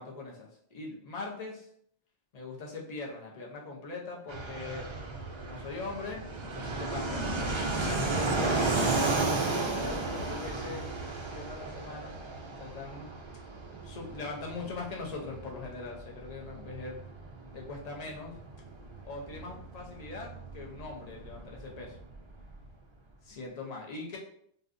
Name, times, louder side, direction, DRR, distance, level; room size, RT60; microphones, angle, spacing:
voice 1, 0.0-1.7 2.3-4.9 5.4-7.3 7.7-10.8 11.3-12.2 12.6-13.1 13.8-17.0 17.5-18.3 19.0-22.0 23.2-24.2, left 3 dB, 40° left, -1 dB, 0.7 m, -41 dB
Fixed-wing aircraft airplane, 4.3-22.6, right 3 dB, 50° right, 0.3 m, -34 dB
4.0 x 2.3 x 2.5 m, 0.66 s
omnidirectional pair, 1.1 m